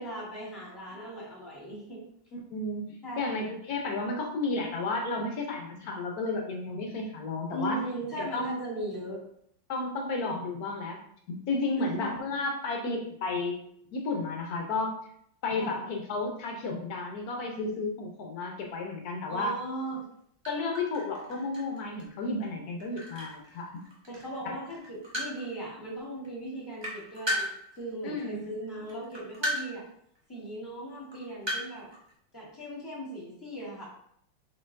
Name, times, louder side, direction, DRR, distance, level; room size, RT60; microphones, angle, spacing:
voice 1, 0.0-2.0 3.0-3.5 7.5-9.2 11.8-12.1 15.6-15.8 19.3-20.1 24.1-27.5 27.8-29.8 30.3-31.9 32.3-33.8, right 1 dB, 10° left, -7 dB, 1.7 m, -38 dB
voice 2, 2.3-7.8 8.2-8.6 9.7-11.0 11.3-13.6 13.9-15.0 15.4-19.5 20.5-23.7 24.4-24.6 28.0-28.5, left 3 dB, 65° left, 1 dB, 1.0 m, -32 dB
sound 1, 20.1-20.2 20.4-24.4 24.7-25.6 26.2-26.3 26.5-28.3 28.9-29.9 30.2-30.3 30.9-32.1, equal, 35° right, 0.4 m, -35 dB
4.5 x 4.1 x 2.5 m, 0.68 s
omnidirectional pair, 2.3 m